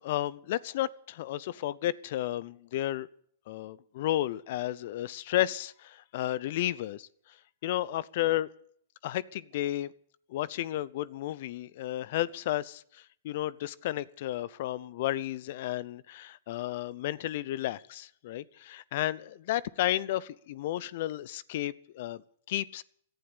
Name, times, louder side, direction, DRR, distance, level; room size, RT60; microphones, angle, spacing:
voice 1, 0.0-3.1 3.5-7.4 7.6-8.5 9.0-9.9 10.3-22.8, left 14 dB, 60° left, 0.7 m, -32 dB
17.5 x 11.5 x 6.9 m
hypercardioid pair, 120°, 0 cm